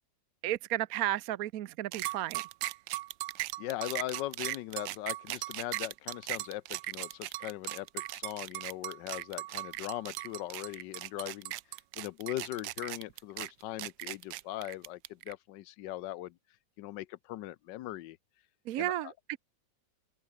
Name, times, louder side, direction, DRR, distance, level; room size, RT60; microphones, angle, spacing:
voice 1, 0.4-2.4 18.7-19.4, right 14 dB, 65° right, 0.9 m, -33 dB
sound 1, 1.9-15.3, right 17 dB, 85° right, 1.3 m, -38 dB
voice 2, 3.6-11.5 12.0-16.4 16.8-18.2 18.8-19.1, left 15 dB, 75° left, 1.3 m, -40 dB
open air
omnidirectional pair, 2.0 m